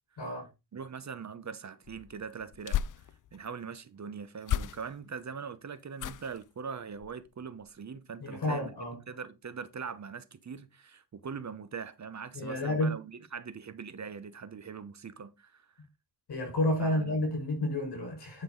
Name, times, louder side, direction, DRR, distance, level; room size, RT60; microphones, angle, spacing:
voice 1, 0.2-0.5 8.2-9.0 12.3-13.0 16.3-18.4, left 1 dB, 70° left, 5.1 m, -30 dB
voice 2, 0.7-2.8 3.3-8.7 9.1-15.7 16.8-17.3, right 6 dB, 40° right, 0.9 m, -42 dB
sound 1, 1.8-3.5 4.4-5.2 5.9-6.5 6.9-7.3 7.6-7.7, left 11 dB, 50° left, 0.5 m, -35 dB
9.5 x 5.4 x 3.9 m
wide cardioid pair, 115°, 41 cm